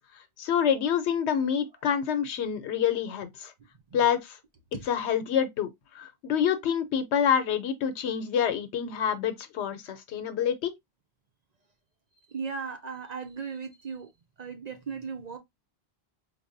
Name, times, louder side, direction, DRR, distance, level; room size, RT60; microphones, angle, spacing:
voice 1, 0.4-3.5 3.9-4.4 4.9-5.7 5.9-10.7, left 8 dB, 85° left, 1.0 m, -27 dB
voice 2, 12.3-14.1 14.4-15.4, right 5 dB, 50° right, 0.6 m, -36 dB
4.7 x 2.2 x 2.5 m
omnidirectional pair, 1.1 m